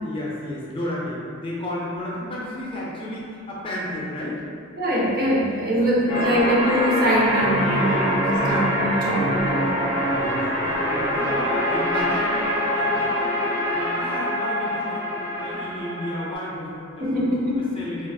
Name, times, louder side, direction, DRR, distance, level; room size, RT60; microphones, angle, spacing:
voice 1, 0.0-4.4 5.2-6.3 7.6-8.9 9.8-17.3 17.6-18.1, left 1 dB, 25° left, -5 dB, 0.4 m, -33 dB
voice 2, 4.8-10.1 17.0-17.7, equal, 45° right, -5 dB, 0.6 m, -23 dB
sound 1, 6.1-16.3, equal, 15° right, 1.0 m, -24 dB
3.7 x 2.4 x 2.3 m, 2.4 s
head